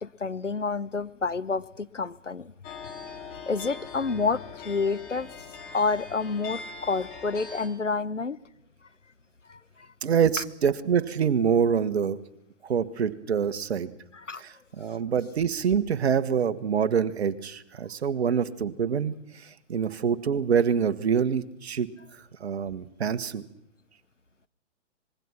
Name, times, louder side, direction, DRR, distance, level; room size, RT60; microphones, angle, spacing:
voice 1, 0.0-2.5 3.5-5.3 5.7-8.4 9.5-9.6 14.2-14.4, left 4 dB, 90° left, 16 dB, 1.0 m, -29 dB
sound 1, 2.6-7.7, left 5 dB, 25° left, 3.4 m, -42 dB
voice 2, 10.0-12.2 12.6-13.9 14.4-19.1 19.4-21.9 22.4-23.4, right 7 dB, 60° right, 12 dB, 1.6 m, -26 dB
26.5 x 21.0 x 5.9 m, 0.73 s
figure-of-eight pair, 120°, 36 cm